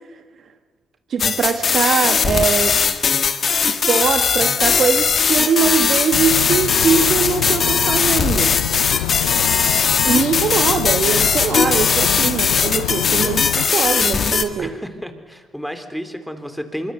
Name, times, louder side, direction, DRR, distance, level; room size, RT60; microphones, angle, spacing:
voice 1, 1.1-2.8 3.7-8.6 10.0-13.4 13.7-14.7, right 6 dB, 55° right, 1.3 m, -21 dB
sound 1, 1.2-14.4, left 6 dB, 50° left, 1.8 m, -19 dB
sound 2, 6.1-13.7, left 15 dB, 90° left, 0.6 m, -27 dB
voice 2, 9.5-9.8 13.2-13.3 14.6-16.9, equal, ahead, 3.4 m, -32 dB
24.5 x 23.5 x 6.9 m
supercardioid pair, 55°, 0 cm